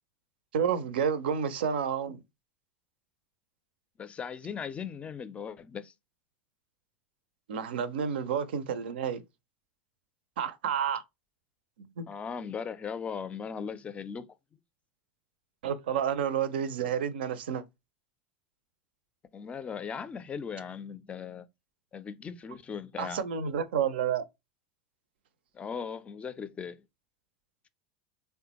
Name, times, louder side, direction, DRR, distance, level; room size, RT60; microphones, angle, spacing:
voice 1, 0.5-2.2 7.5-9.2 10.4-11.0 11.8-12.1 15.6-17.6 23.0-24.2, right 8 dB, 70° right, 0.4 m, -30 dB
voice 2, 4.0-5.9 12.1-14.3 19.3-21.5 21.9-23.2 25.5-26.8, left 6 dB, 20° left, 0.4 m, -38 dB
3.4 x 2.1 x 2.9 m
hypercardioid pair, 90°, 6 cm